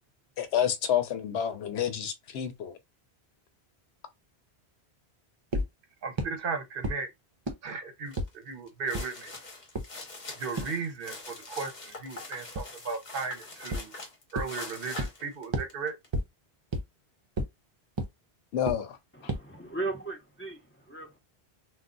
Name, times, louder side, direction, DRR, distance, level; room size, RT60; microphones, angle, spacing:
voice 1, 0.4-2.8 18.5-19.0 19.2-19.3, left 9 dB, 85° left, 0.9 m, -29 dB
sound 1, 5.5-5.6 6.2-6.3 6.8-6.9 7.5-7.6 8.2-8.3 8.9-9.0 9.8-9.9 10.6-10.7 12.6-12.7 13.7-13.8 14.4-14.5 15.0-15.1 15.5-15.6 16.1-16.2 16.7-16.8 17.4-17.5 18.0-18.1 18.7-18.8 19.3-19.4, right 1 dB, 35° right, 0.5 m, -29 dB
voice 2, 6.0-7.1 7.6-9.3 10.4-13.9 14.3-16.0, right 5 dB, 60° right, 0.9 m, -36 dB
sound 2, 8.1-8.3 8.7-16.1, left 2 dB, 45° left, 1.0 m, -44 dB
voice 3, 19.1-21.2, right 3 dB, 15° left, 0.7 m, -37 dB
2.3 x 2.2 x 3.8 m
omnidirectional pair, 1.1 m